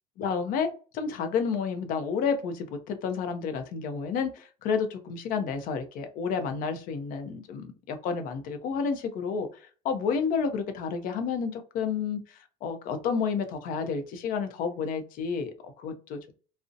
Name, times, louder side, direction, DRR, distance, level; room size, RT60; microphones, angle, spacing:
voice 1, 0.2-9.5 9.8-16.3, left 6 dB, 50° left, 0.5 m, -30 dB
2.5 x 2.0 x 2.5 m
cardioid pair, 160°, 18 cm